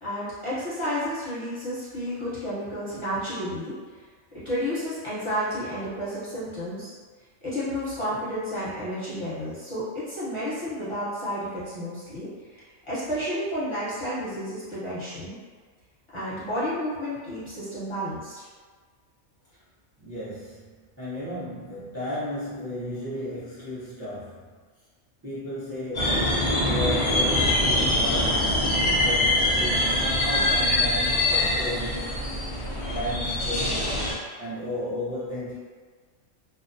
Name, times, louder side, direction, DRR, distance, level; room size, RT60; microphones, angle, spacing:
voice 1, 0.0-3.7 4.3-6.9 7.4-12.3 12.9-15.4 16.1-18.5, equal, 25° left, -13 dB, 0.9 m, -31 dB
voice 2, 20.0-24.6 25.2-28.6 29.0-32.1 32.7-34.0 34.4-35.6, left 1 dB, 20° right, -14 dB, 0.5 m, -34 dB
sound 1, 25.9-34.1, left 1 dB, 45° left, 0.4 m, -24 dB
2.6 x 2.0 x 2.6 m, 1.5 s
omnidirectional pair, 1.3 m